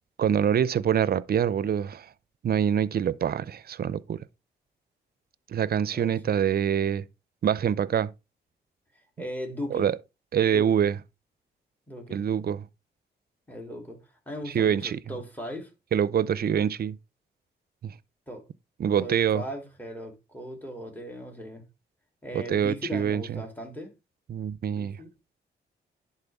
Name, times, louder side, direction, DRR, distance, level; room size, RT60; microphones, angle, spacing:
voice 1, 0.2-2.1 2.4-4.2 5.5-7.0 7.4-8.1 9.7-10.0 10.3-11.0 12.1-12.7 14.5-15.0 15.9-17.0 17.8-17.9 18.8-19.4 22.3-23.4 24.3-25.0, right 8 dB, 55° right, 0.5 m, -25 dB
voice 2, 5.9-6.3 9.2-9.9 10.5-10.8 11.9-12.2 13.5-14.0 14.3-15.7 18.3-18.4 19.0-21.6 22.2-23.9 24.7-25.1, equal, 10° left, 3.2 m, -38 dB
10.5 x 4.3 x 3.5 m
supercardioid pair, 55°, 19 cm